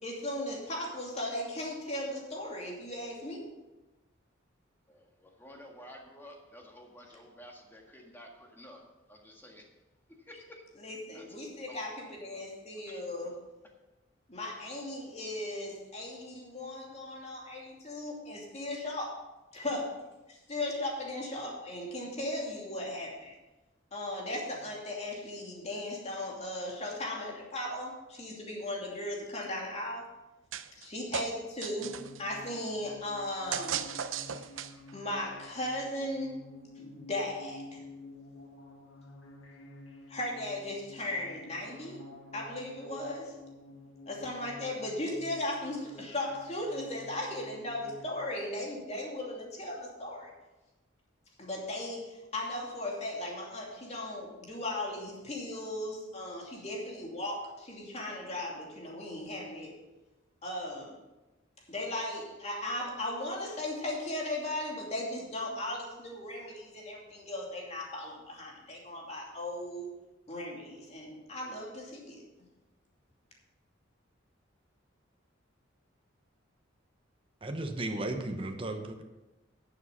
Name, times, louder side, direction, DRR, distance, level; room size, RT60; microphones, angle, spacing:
voice 1, 0.0-3.5 10.8-13.4 14.3-19.2 19.5-20.0 20.3-23.4 23.9-30.0 30.8-33.9 34.9-36.4 36.8-37.8 40.1-42.0 42.3-43.3 44.1-50.3 51.4-59.8 60.4-61.0 61.7-69.9 70.3-72.2, left 1 dB, 35° left, -2 dB, 2.7 m, -37 dB
voice 2, 4.9-8.8 9.1-9.6 10.3-10.6 11.1-11.2 11.7-11.9 12.3-12.4 12.7-13.0 31.1-31.3, equal, 10° left, 1 dB, 1.7 m, -51 dB
sound 1, 30.5-30.9 31.1-32.2 33.5-34.9, right 7 dB, 75° right, 0.6 m, -36 dB
sound 2, 31.8-48.1, left 2 dB, 80° left, 1.7 m, -51 dB
voice 3, 77.4-79.0, right 2 dB, 25° right, 5 dB, 1.0 m, -35 dB
11.0 x 7.3 x 5.7 m, 1.1 s
head